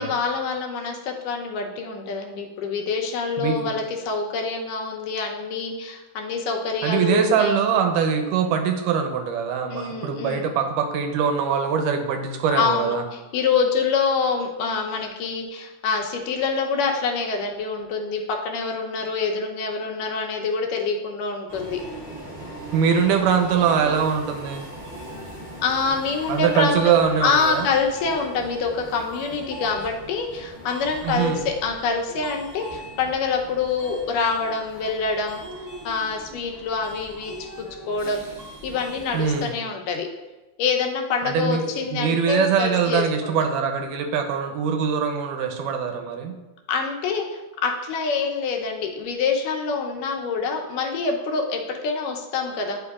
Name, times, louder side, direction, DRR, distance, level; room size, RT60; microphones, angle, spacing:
voice 1, 0.0-7.7 9.7-10.5 12.5-21.8 25.6-35.4 35.8-38.3 38.6-40.1 40.6-43.3 46.7-47.3 47.6-52.8, left 5 dB, 80° left, 2 dB, 2.3 m, -26 dB
voice 2, 3.4-3.8 6.8-13.0 22.6-24.7 26.3-27.7 31.0-31.5 39.1-39.5 41.2-46.3, right 6 dB, 85° right, 5 dB, 2.1 m, -22 dB
Subway metro underground, 21.5-39.5, right 1 dB, 10° right, 0.9 m, -40 dB
9.7 x 5.2 x 2.4 m, 1.1 s
omnidirectional pair, 3.8 m